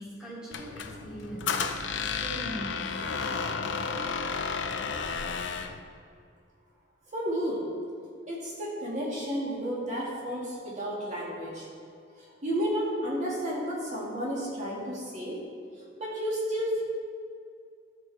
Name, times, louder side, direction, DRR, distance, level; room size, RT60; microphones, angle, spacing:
voice 1, 0.0-3.1, equal, 5° right, -7 dB, 2.4 m, -41 dB
Squeak, 0.5-5.8, left 5 dB, 65° left, 0.6 m, -32 dB
voice 2, 7.1-7.7 8.3-11.7 12.2-15.4 16.0-16.8, equal, 40° right, -5 dB, 2.3 m, -32 dB
13.0 x 6.6 x 4.3 m, 2.3 s
head